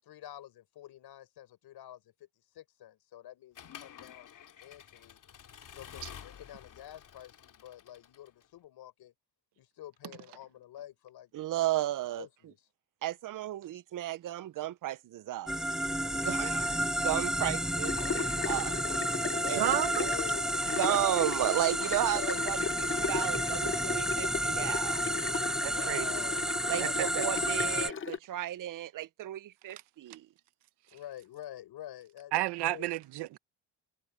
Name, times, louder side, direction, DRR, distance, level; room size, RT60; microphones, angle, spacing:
voice 1, 0.0-4.3 4.6-5.2 5.7-9.1 9.6-11.3 11.6-11.9 12.2-12.6 17.0-17.6 18.0-18.1 19.4-19.7 20.0-21.3 22.1-22.4 25.6-27.5 30.9-32.3 32.6-33.0, left 12 dB, 75° left, 5.5 m, -47 dB
Accelerating revving vroom / Mechanisms, 3.6-8.5, left 9 dB, 50° left, 2.7 m, -50 dB
voice 2, 11.3-12.3 13.0-15.5 16.2-18.9 19.2-19.6 20.8-25.0 26.7-30.3, right 13 dB, 55° right, 0.6 m, -34 dB
sound 1, 15.5-27.9, right 1 dB, ahead, 0.5 m, -31 dB
sound 2, 17.8-28.2, left 6 dB, 30° left, 0.9 m, -37 dB
voice 3, 19.6-20.1 25.6-26.1 26.8-26.9 27.2-27.3 32.3-33.4, right 16 dB, 85° right, 1.0 m, -31 dB
cardioid pair, 115°, 39 cm